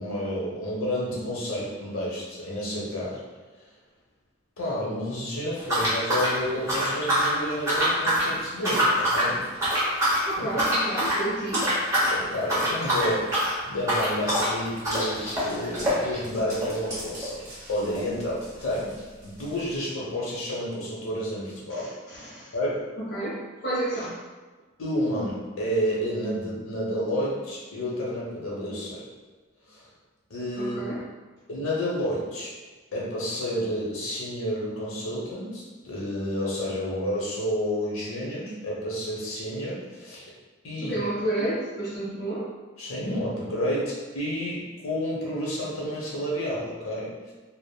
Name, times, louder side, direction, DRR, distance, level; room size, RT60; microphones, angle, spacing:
voice 1, 0.0-3.2 4.6-9.5 10.4-10.5 12.1-17.4 17.7-19.0 19.2-21.9 22.5-22.8 24.8-29.0 29.7-29.8 30.3-30.8 31.5-32.5 32.9-40.3 40.6-41.0 42.8-47.3, equal, 85° left, -5 dB, 0.8 m, -30 dB
sound 1, 5.6-7.4 7.7-8.3 8.6-9.3 9.6-10.2 10.6-11.2 11.5-12.2 12.4-18.1 18.4-18.5 18.7-18.8 19.5-19.6, equal, 15° right, 0.9 m, -25 dB
voice 2, 10.3-11.7 21.7-22.5 23.0-24.1 30.6-31.0 40.8-42.5, right 1 dB, 55° left, -7 dB, 0.6 m, -31 dB
3.4 x 2.0 x 2.3 m, 1.3 s
head